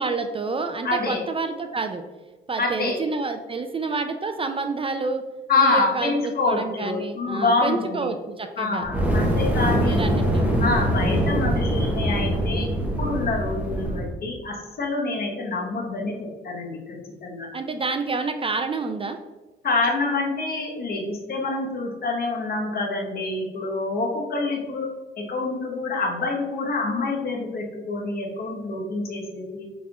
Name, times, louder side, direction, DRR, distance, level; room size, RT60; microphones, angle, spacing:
voice 1, 0.0-2.0 2.5-5.2 5.6-8.8 9.9-10.5 17.5-19.2, right 3 dB, 30° right, 7 dB, 0.3 m, -28 dB
voice 2, 0.8-1.2 2.6-3.0 5.5-8.1 8.6-10.0 10.6-17.5 19.6-24.9 25.2-29.7, left 3 dB, 50° left, 0 dB, 1.1 m, -26 dB
Fire, 8.8-14.1, right 1 dB, 10° right, 1.0 m, -23 dB
5.9 x 3.5 x 2.3 m, 1.3 s
cardioid pair, 90°, 20 cm